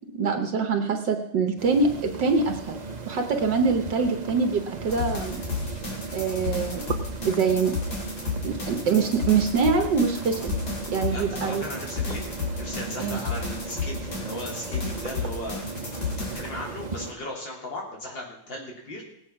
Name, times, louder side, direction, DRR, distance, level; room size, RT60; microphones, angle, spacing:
voice 1, 0.1-2.8 3.1-5.4 6.1-6.8 7.2-7.8 8.4-10.6 10.9-11.6 13.0-13.2, right 4 dB, 70° right, 5 dB, 1.7 m, -24 dB
sound 1, 1.6-17.1, right 3 dB, 35° right, 0.7 m, -37 dB
sound 2, 4.9-16.5, left 4 dB, 55° left, 3.5 m, -32 dB
voice 2, 11.1-19.0, left 1 dB, 75° left, -2 dB, 4.1 m, -37 dB
19.0 x 8.4 x 5.8 m, 0.76 s
omnidirectional pair, 2.0 m